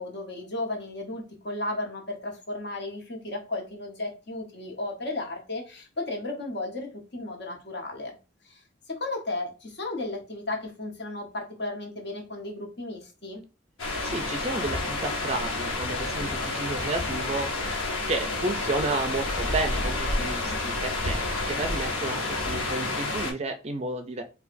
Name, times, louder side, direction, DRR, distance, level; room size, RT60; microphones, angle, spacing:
voice 1, 0.0-8.2 8.4-8.6 8.9-13.4, left 2 dB, 60° left, 1.1 m, -34 dB
sound 1, 13.8-23.3, left 2 dB, 90° left, 1.1 m, -29 dB
voice 2, 14.0-17.6 18.1-24.2, right 2 dB, 35° right, 0.4 m, -32 dB
4.7 x 2.3 x 2.5 m
head